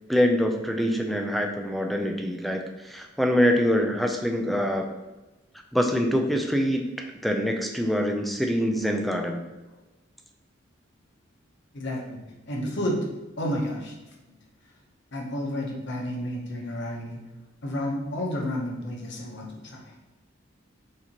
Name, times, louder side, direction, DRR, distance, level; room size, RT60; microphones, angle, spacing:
voice 1, 0.1-4.9 5.7-9.4, equal, ahead, 3 dB, 0.4 m, -25 dB
voice 2, 11.7-12.2 12.5-13.0 13.4-13.9 15.1-17.2 17.6-19.9, equal, 60° left, -1 dB, 0.9 m, -31 dB
6.5 x 2.8 x 2.9 m, 1.1 s
head